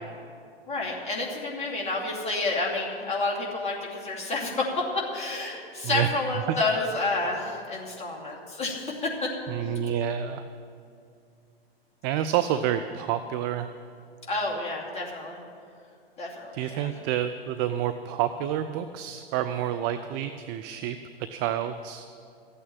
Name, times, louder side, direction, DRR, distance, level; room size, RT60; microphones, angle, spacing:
voice 1, 0.7-9.3 9.6-9.7 14.3-15.4 16.2-16.9, left 2 dB, 20° left, -2 dB, 2.6 m, -29 dB
voice 2, 9.5-10.4 12.0-13.7 16.5-21.0 21.3-22.2, right 10 dB, 25° right, 9 dB, 0.3 m, -28 dB
13.5 x 8.9 x 8.8 m, 2.4 s
figure-of-eight pair, 110°, 31 cm